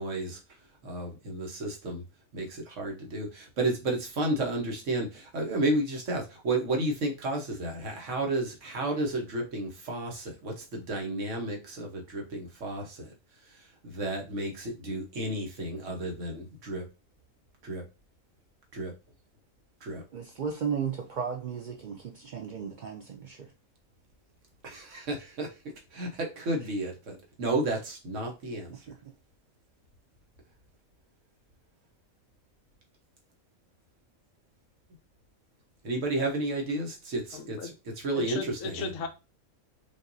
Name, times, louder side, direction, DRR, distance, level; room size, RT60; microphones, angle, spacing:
voice 1, 0.0-2.0 2.3-16.9 17.6-17.8 18.7-18.9 19.8-20.0 24.6-28.9 35.8-38.9, right 2 dB, 60° right, 1.4 m, -32 dB
voice 2, 20.1-23.5 28.9-29.0, right 7 dB, 80° right, 0.4 m, -35 dB
voice 3, 37.3-37.7 38.1-39.1, left 5 dB, 70° left, 0.9 m, -36 dB
5.3 x 2.7 x 2.6 m
omnidirectional pair, 1.4 m